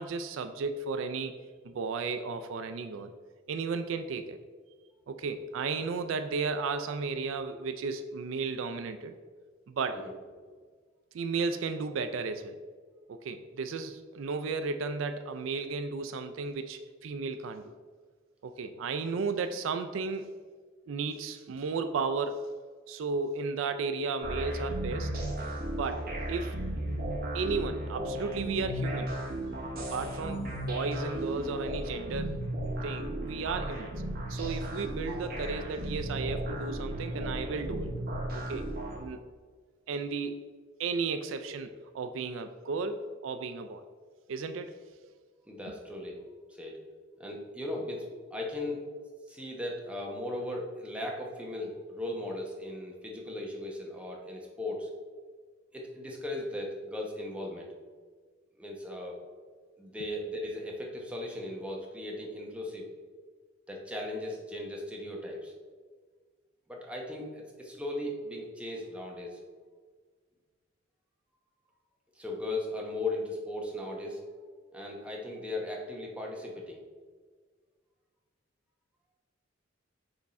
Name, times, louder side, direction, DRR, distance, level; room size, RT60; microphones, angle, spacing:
voice 1, 0.0-1.3 1.6-3.1 3.5-4.4 5.1-9.2 9.7-10.0 11.1-12.6 13.1-17.7 18.4-20.3 20.9-22.5 22.9-25.1 25.8-26.5 27.3-29.2 29.8-32.4 32.8-33.9 34.3-37.9 38.3-38.7 39.0-39.2 39.9-40.5 40.8-43.8 44.3-44.8 45.7-45.8, right 4 dB, 70° right, 9 dB, 0.4 m, -34 dB
sound 1, 24.2-39.0, right 1 dB, 50° right, 1.2 m, -35 dB
voice 2, 45.5-46.2 46.5-46.8 47.2-48.8 49.3-54.9 55.7-57.7 58.6-59.1 59.8-62.8 63.7-65.5 66.7-69.4 72.2-74.2 74.7-76.8, left 1 dB, 5° right, -1 dB, 0.9 m, -37 dB
6.3 x 3.6 x 4.1 m, 1.6 s
head